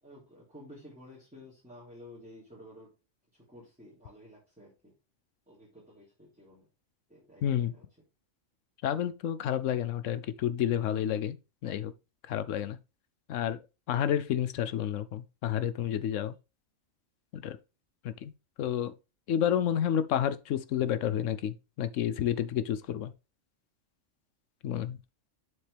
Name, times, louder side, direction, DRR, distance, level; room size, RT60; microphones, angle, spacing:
voice 1, 0.0-2.9 3.3-4.9 5.5-6.7 7.1-7.8, left 1 dB, 5° right, 3.4 m, -52 dB
voice 2, 7.4-7.7 8.8-11.4 11.6-11.9 12.3-12.8 13.3-13.6 13.9-16.3 17.3-17.6 18.0-18.3 18.6-18.9 19.3-23.1 24.6-25.0, left 10 dB, 75° left, 0.9 m, -30 dB
7.3 x 6.5 x 3.4 m
omnidirectional pair, 1.3 m